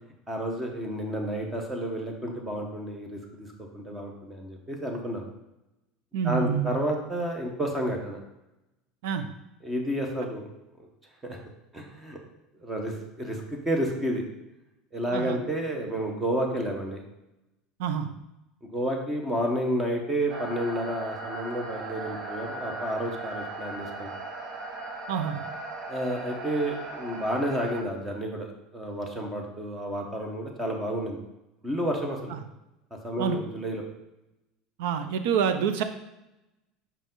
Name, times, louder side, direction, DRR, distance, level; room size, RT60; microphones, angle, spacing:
voice 1, 0.3-3.5 3.7-5.3 6.2-8.2 9.6-10.4 10.8-10.9 11.2-11.4 11.7-12.2 12.6-14.2 14.9-17.0 18.7-24.1 25.9-31.2 31.6-32.3 33.0-33.8, right 1 dB, 15° right, 2 dB, 1.1 m, -30 dB
voice 2, 6.1-6.8 9.0-9.3 15.1-15.4 17.8-18.1 25.1-25.4 32.3-32.4 33.2-33.4 34.8-35.8, right 7 dB, 80° right, 9 dB, 0.6 m, -27 dB
sound 1, 20.3-27.8, right 2 dB, 40° right, 0.9 m, -38 dB
5.4 x 5.1 x 3.8 m, 0.93 s
supercardioid pair, 140°, 0 cm